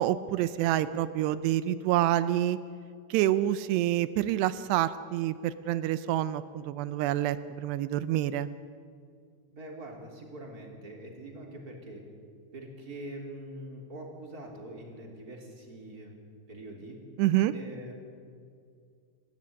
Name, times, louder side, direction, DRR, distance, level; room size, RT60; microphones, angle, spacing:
voice 1, 0.0-2.6 3.1-8.5 17.2-17.5, right 13 dB, 80° right, 14 dB, 2.5 m, -27 dB
voice 2, 9.5-12.0 12.5-16.1 16.5-17.0 17.5-17.9, right 1 dB, 20° right, 0 dB, 3.2 m, -43 dB
27.0 x 13.0 x 9.6 m, 2.3 s
omnidirectional pair, 5.4 m